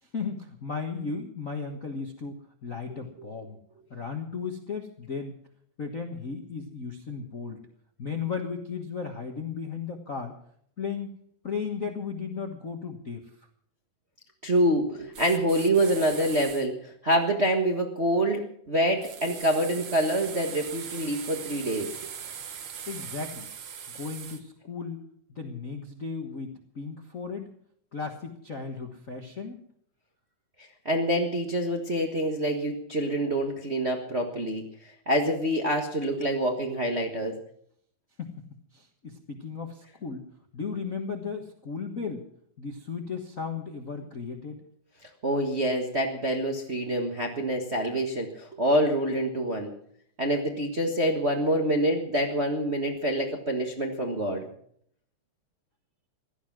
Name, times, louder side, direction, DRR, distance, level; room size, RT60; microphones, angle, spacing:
voice 1, 0.0-3.6 3.9-5.4 5.8-7.6 8.0-10.3 10.8-11.1 11.4-13.5 22.9-23.5 23.9-27.5 27.9-29.6 38.2-38.3 38.7-40.2 40.5-42.3 42.6-44.6, left 5 dB, 45° left, 3 dB, 1.1 m, -35 dB
voice 2, 14.4-21.9 30.8-37.4 45.2-49.7 50.2-54.5, right 1 dB, 35° right, 2 dB, 1.1 m, -26 dB
sound 1, 15.1-16.7 19.0-24.4, right 7 dB, 50° right, 1.8 m, -40 dB
17.0 x 13.0 x 6.1 m, 0.65 s
omnidirectional pair, 3.6 m